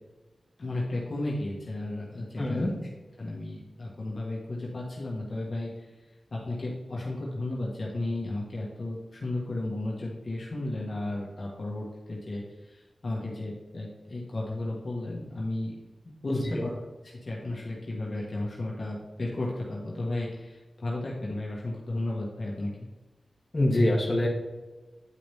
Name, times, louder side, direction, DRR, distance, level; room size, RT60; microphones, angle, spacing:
voice 1, 0.6-2.7 3.2-5.9 6.3-15.8 16.2-22.7, left 2 dB, 55° left, -4 dB, 1.6 m, -34 dB
voice 2, 2.4-2.7 16.3-16.6 23.5-24.3, left 1 dB, 30° left, -3 dB, 2.0 m, -25 dB
9.8 x 5.0 x 3.6 m, 1.2 s
wide cardioid pair, 70°, 0 cm